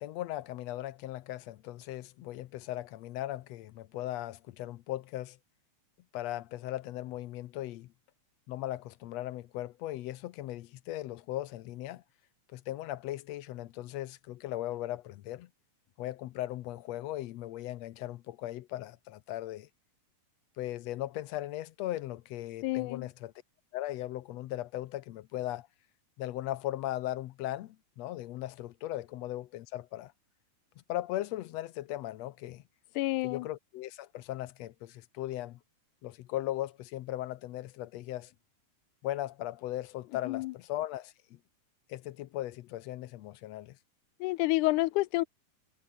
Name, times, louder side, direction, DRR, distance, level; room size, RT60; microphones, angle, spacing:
voice 1, 0.0-5.4 6.1-7.9 8.5-12.0 12.5-15.5 16.0-19.7 20.6-23.3 23.7-25.7 26.2-30.1 30.9-32.6 33.2-35.6 36.0-38.3 39.0-41.4 41.9-43.8, left 14 dB, 75° left, 1.8 m, -38 dB
voice 2, 22.6-23.1 33.0-33.5 40.3-40.5 44.2-45.2, left 20 dB, 90° left, 2.1 m, -29 dB
omnidirectional pair, 3.5 m